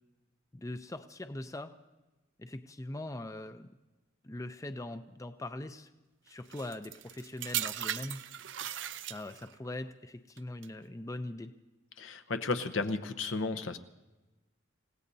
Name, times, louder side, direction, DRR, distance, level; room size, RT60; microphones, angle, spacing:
voice 1, 0.5-1.7 2.4-3.7 4.2-5.9 6.3-8.2 9.0-11.5, left 1 dB, 15° left, 9 dB, 0.5 m, -41 dB
sound 1, 6.5-9.6 10.4-10.7, right 11 dB, 65° right, 0.5 m, -38 dB
voice 2, 12.0-13.8, left 3 dB, 75° left, 10 dB, 0.8 m, -33 dB
28.5 x 16.5 x 2.7 m, 1.1 s
head